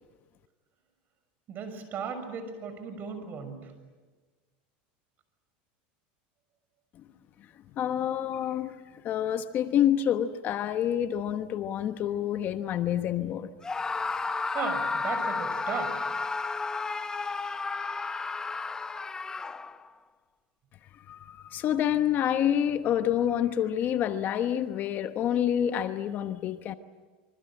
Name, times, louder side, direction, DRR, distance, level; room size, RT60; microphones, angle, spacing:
voice 1, 1.5-3.7 14.5-16.0, right 5 dB, 40° right, 6.2 m, -36 dB
voice 2, 7.8-13.5 21.1-26.7, left 10 dB, 40° left, 1.1 m, -28 dB
Screaming, 13.6-19.9, left 4 dB, 15° left, 0.8 m, -32 dB
26.5 x 25.0 x 8.9 m
supercardioid pair, 135°, 5 cm